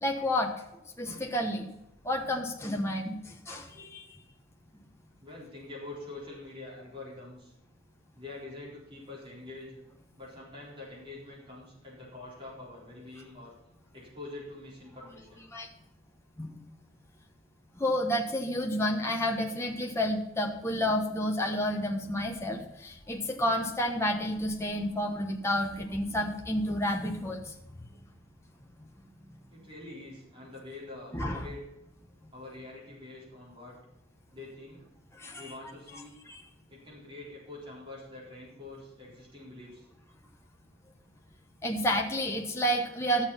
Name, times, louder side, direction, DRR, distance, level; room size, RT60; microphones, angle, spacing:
voice 1, 0.0-0.5 1.0-1.7 2.0-4.0 15.5-15.7 16.4-16.6 17.8-27.5 31.1-31.5 35.2-35.5 36.3-36.4 41.6-43.3, equal, 10° left, 1 dB, 1.0 m, -30 dB
voice 2, 5.2-7.5 8.1-9.8 10.2-13.5 13.9-15.5 29.5-31.6 32.3-33.7 34.3-34.8 35.4-36.2 36.7-39.9, left 2 dB, 25° right, -5 dB, 4.1 m, -45 dB
13.0 x 7.3 x 5.7 m, 0.88 s
head